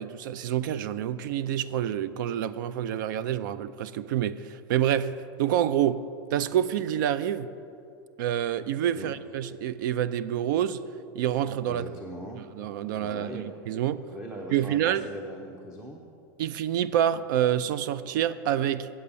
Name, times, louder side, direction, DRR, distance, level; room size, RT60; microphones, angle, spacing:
voice 1, 0.0-5.1 5.4-6.0 6.3-7.5 8.2-10.8 11.1-11.9 12.6-14.0 14.5-15.1 16.4-18.9, right 10 dB, 65° right, 16 dB, 0.4 m, -27 dB
voice 2, 11.6-12.4 12.9-13.8 14.1-16.0, equal, 5° right, 1 dB, 0.5 m, -40 dB
8.4 x 7.8 x 6.8 m, 2.6 s
supercardioid pair, 170°, 11 cm